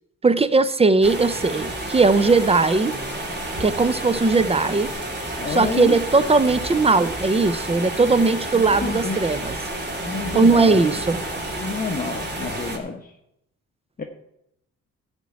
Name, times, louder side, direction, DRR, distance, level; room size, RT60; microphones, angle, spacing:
voice 1, 0.2-2.9 3.6-4.9 5.5-9.5 10.3-11.2, right 3 dB, 20° right, 14 dB, 0.7 m, -19 dB
sound 1, 1.0-12.8, right 1 dB, 35° right, 2.7 m, -30 dB
voice 2, 5.4-6.0 8.5-9.3 10.0-11.0 11.5-13.1 14.0-14.1, left 4 dB, 30° left, 1 dB, 1.2 m, -29 dB
13.0 x 4.5 x 8.5 m, 0.81 s
cardioid pair, 90°, 30 cm